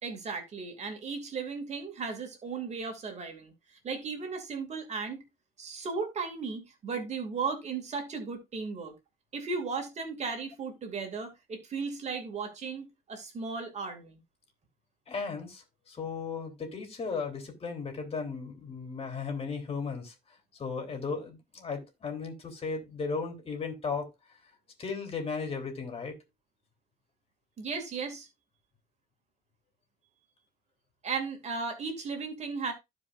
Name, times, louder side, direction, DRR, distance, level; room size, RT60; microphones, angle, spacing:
voice 1, 0.0-3.5 3.8-5.2 5.6-8.9 9.3-14.2 27.6-28.3 31.0-32.7, right 4 dB, 40° right, 2.6 m, -36 dB
voice 2, 15.1-15.6 15.9-20.1 20.6-24.1 24.8-26.2, left 5 dB, 35° left, 3.4 m, -35 dB
15.0 x 5.1 x 2.6 m
cardioid pair, 110°, 17 cm